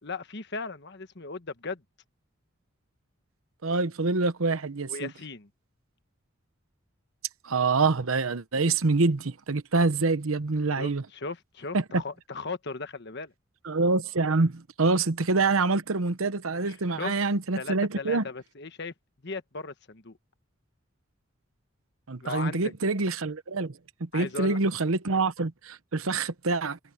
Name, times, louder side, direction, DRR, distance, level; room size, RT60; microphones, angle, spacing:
voice 1, 0.0-1.8 4.9-5.5 10.8-13.3 16.7-17.2 17.5-18.9 19.2-20.2 22.2-22.7 24.1-24.6, left 4 dB, 55° left, 1.3 m, -37 dB
voice 2, 3.6-5.1 7.4-11.0 11.7-11.8 13.6-18.2 22.1-23.7 24.0-26.8, right 3 dB, 80° right, 1.0 m, -26 dB
head